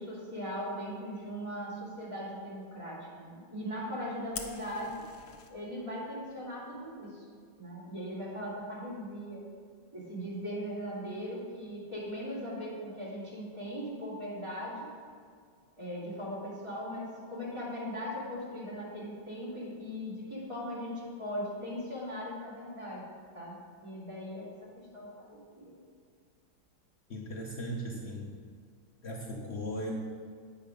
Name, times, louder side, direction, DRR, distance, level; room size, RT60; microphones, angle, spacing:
voice 1, 0.0-4.9 5.5-7.2 7.6-9.4 9.9-14.9 15.8-23.0 23.3-23.6 23.8-24.5 24.7-25.7, equal, 15° right, -8 dB, 2.3 m, -39 dB
Fire, 4.3-5.5, left 6 dB, 65° left, 1.1 m, -44 dB
voice 2, 27.1-28.3 29.0-29.9, equal, 90° left, -1 dB, 0.5 m, -37 dB
8.5 x 5.6 x 5.1 m, 2.1 s
omnidirectional pair, 2.2 m